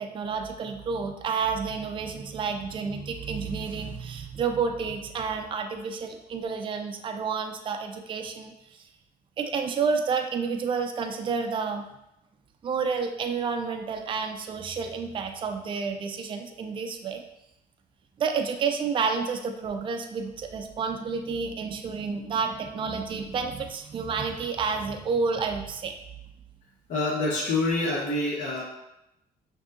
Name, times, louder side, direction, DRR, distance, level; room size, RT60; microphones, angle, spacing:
voice 1, 0.0-8.9 9.4-11.8 12.6-17.2 18.2-25.9, right 5 dB, 30° right, 5 dB, 0.4 m, -30 dB
voice 2, 26.9-28.6, left 2 dB, 45° left, -4 dB, 0.9 m, -26 dB
5.9 x 2.7 x 2.6 m, 0.87 s
cardioid pair, 110°, 17 cm